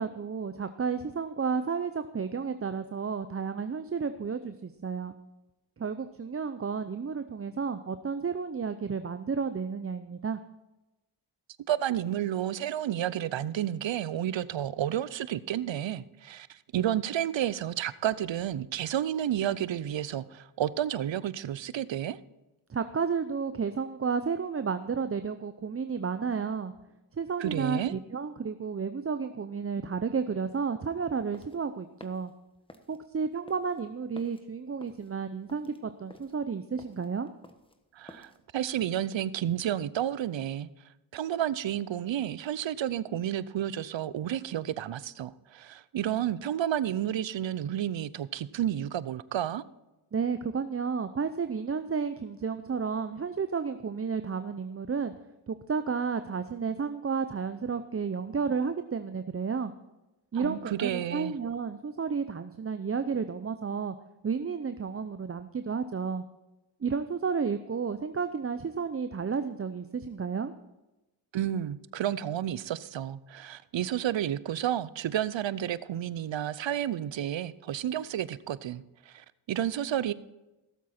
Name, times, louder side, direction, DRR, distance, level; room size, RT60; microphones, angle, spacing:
voice 1, 0.0-5.1 5.8-10.4 22.7-26.7 27.2-32.3 32.9-37.3 50.1-55.1 55.5-59.7 60.3-63.9 64.2-66.2 66.8-70.5, right 5 dB, 30° right, 10 dB, 0.6 m, -32 dB
voice 2, 11.7-22.2 27.4-27.9 37.9-40.7 41.1-49.6 60.3-61.3 71.3-80.1, right 11 dB, 65° right, 18 dB, 0.7 m, -31 dB
sound 1, 31.1-38.4, left 1 dB, 10° left, 1.3 m, -54 dB
17.0 x 7.5 x 4.3 m, 1.0 s
cardioid pair, 50°, 49 cm